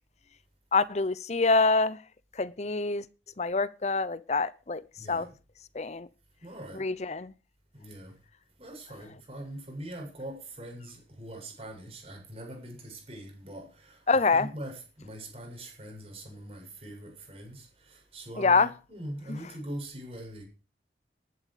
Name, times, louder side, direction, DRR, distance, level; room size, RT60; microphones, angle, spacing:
voice 1, 0.7-2.0 2.4-3.0 3.4-4.8 5.1-5.3 5.8-6.1 6.7-7.3 14.1-14.5 18.4-18.7 19.3-19.4, left 3 dB, 40° left, 0.7 m, -25 dB
voice 2, 5.0-5.3 6.4-6.9 7.7-8.1 8.6-20.4, right 1 dB, 35° right, 7.7 m, -42 dB
19.5 x 11.0 x 5.0 m
head